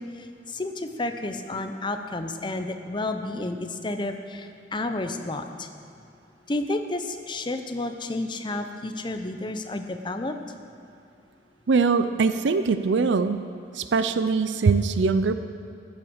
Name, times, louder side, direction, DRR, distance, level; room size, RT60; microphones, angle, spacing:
voice 1, 0.0-5.7 6.5-10.4, left 2 dB, 25° left, 6 dB, 0.7 m, -31 dB
voice 2, 11.7-13.5 13.7-15.3, right 4 dB, 80° right, 11 dB, 0.5 m, -22 dB
14.0 x 8.8 x 6.4 m, 2.6 s
head